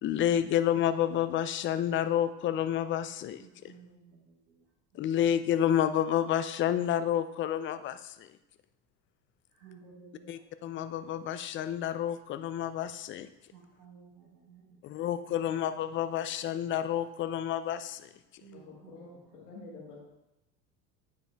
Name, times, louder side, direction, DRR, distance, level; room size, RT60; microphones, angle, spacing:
voice 1, 0.0-3.7 4.9-8.4 10.3-13.3 14.8-18.1, left 10 dB, 25° left, 12 dB, 0.4 m, -30 dB
voice 2, 3.7-4.3 9.6-10.3 13.5-14.8 18.4-18.6, right 5 dB, 65° right, -3 dB, 1.4 m, -54 dB
voice 3, 18.5-20.0, left 3 dB, 80° left, -7 dB, 2.2 m, -48 dB
9.3 x 4.7 x 3.4 m, 0.90 s
hypercardioid pair, 75°, 48 cm